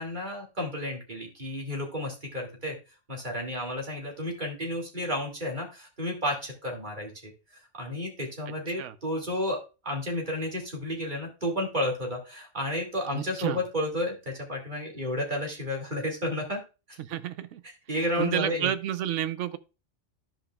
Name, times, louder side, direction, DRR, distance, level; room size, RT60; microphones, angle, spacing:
voice 1, 0.0-2.8 3.1-7.3 7.8-16.6 16.9-17.0 17.9-18.7, left 1 dB, 40° right, 2.5 m, -32 dB
voice 2, 8.5-8.9 13.1-13.6 17.0-17.6 18.2-19.6, right 11 dB, 90° right, 0.9 m, -31 dB
14.0 x 5.1 x 2.3 m
omnidirectional pair, 1.2 m